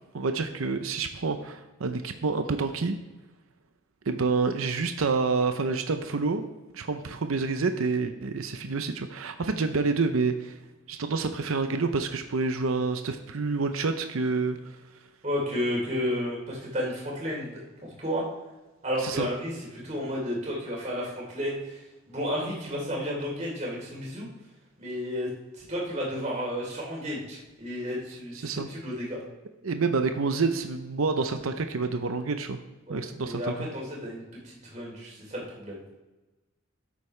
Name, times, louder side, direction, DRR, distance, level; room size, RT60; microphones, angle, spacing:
voice 1, 0.1-3.0 4.1-6.5 6.7-10.5 10.9-14.8 19.0-19.3 28.4-28.7 29.6-32.6 32.9-33.7, right 4 dB, 90° right, 8 dB, 0.7 m, -28 dB
voice 2, 15.2-17.5 17.8-18.2 18.8-19.5 19.8-21.8 22.1-24.3 24.8-25.3 25.6-29.2 32.9-35.8, equal, 35° right, -3 dB, 3.2 m, -32 dB
11.5 x 8.3 x 3.3 m, 1.1 s
head